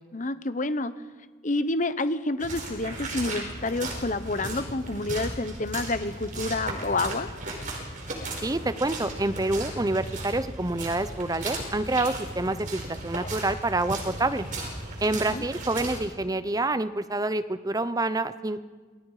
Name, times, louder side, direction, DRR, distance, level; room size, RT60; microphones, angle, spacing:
voice 1, 0.1-0.9 1.4-7.3 15.3-15.5, left 2 dB, 40° left, 12 dB, 0.9 m, -28 dB
sound 1, 2.4-16.0, right 2 dB, 40° right, 4.9 m, -36 dB
voice 2, 8.4-14.5 15.0-18.7, right 2 dB, 20° right, 13 dB, 0.7 m, -27 dB
27.5 x 20.5 x 4.9 m, 1.4 s
head